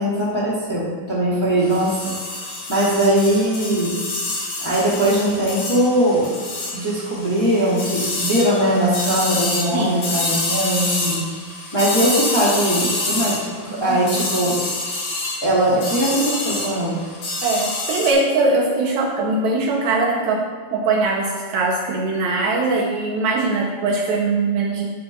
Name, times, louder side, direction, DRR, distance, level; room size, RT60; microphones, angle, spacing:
voice 1, 0.0-2.2 2.7-4.0 4.6-6.3 6.7-11.2 11.7-14.6 15.4-17.0, right 1 dB, 25° left, -8 dB, 0.5 m, -20 dB
sound 1, 1.6-18.1, left 2 dB, 65° left, 4.3 m, -27 dB
voice 2, 9.7-10.0 13.7-14.0 17.4-24.9, right 3 dB, 90° right, -1 dB, 1.6 m, -21 dB
9.9 x 4.1 x 6.7 m, 1.5 s
omnidirectional pair, 4.4 m